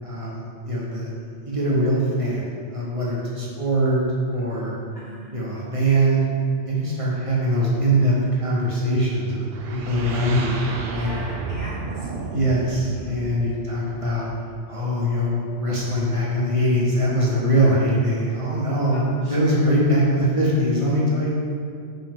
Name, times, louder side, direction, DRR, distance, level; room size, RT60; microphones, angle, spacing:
voice 1, 0.0-1.1 1.4-4.0 4.3-4.8 5.3-6.2 6.6-10.6 10.9-11.1 12.2-14.3 14.7-21.3, right 1 dB, 30° right, -5 dB, 1.1 m, -22 dB
voice 2, 4.9-5.3 10.5-12.1 12.6-13.3 18.9-19.7, left 1 dB, 50° left, -3 dB, 0.6 m, -40 dB
sound 1, 9.5-14.4, right 4 dB, 65° right, 0.7 m, -32 dB
5.7 x 5.6 x 3.7 m, 2.3 s
omnidirectional pair, 1.2 m